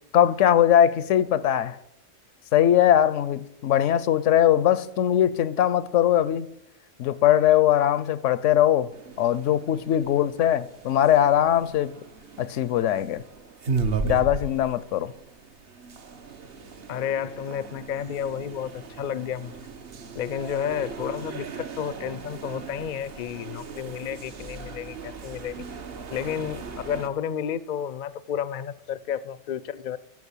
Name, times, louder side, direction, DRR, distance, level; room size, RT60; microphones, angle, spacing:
voice 1, 0.1-1.8 2.5-6.5 7.0-8.9 9.2-12.0 12.4-13.2 14.0-15.1, left 11 dB, 75° left, 0.9 m, -21 dB
sound 1, 8.9-27.1, right 5 dB, 55° right, 1.1 m, -37 dB
voice 2, 16.9-19.5 20.1-25.7 26.1-30.0, left 9 dB, 55° left, 0.5 m, -31 dB
13.5 x 6.4 x 8.3 m
omnidirectional pair, 1.3 m